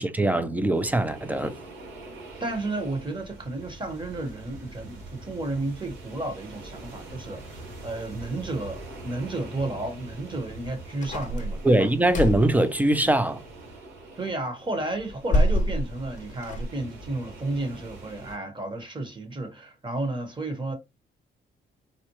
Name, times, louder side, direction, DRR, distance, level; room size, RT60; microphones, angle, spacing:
voice 1, 0.0-1.5 11.6-13.4, right 1 dB, 10° right, 0.5 m, -22 dB
sound 1, 0.7-18.4, right 2 dB, 75° right, 2.0 m, -44 dB
voice 2, 2.4-11.9 14.2-20.7, right 2 dB, 25° right, 1.2 m, -32 dB
sound 2, 11.0-12.6 15.0-16.7, left 1 dB, 40° left, 0.9 m, -26 dB
4.1 x 2.3 x 3.0 m
cardioid pair, 90°, 20 cm